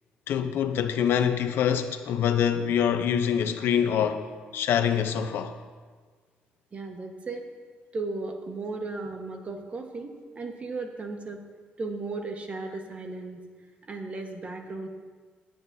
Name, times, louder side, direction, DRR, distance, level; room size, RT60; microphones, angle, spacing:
voice 1, 0.3-4.3 4.5-5.6, left 8 dB, 80° left, 0.8 m, -25 dB
voice 2, 6.7-7.5 7.9-11.4 11.8-13.4 13.8-14.9, right 3 dB, 35° right, 1.4 m, -35 dB
18.5 x 9.3 x 2.8 m
cardioid pair, 100°, 4 cm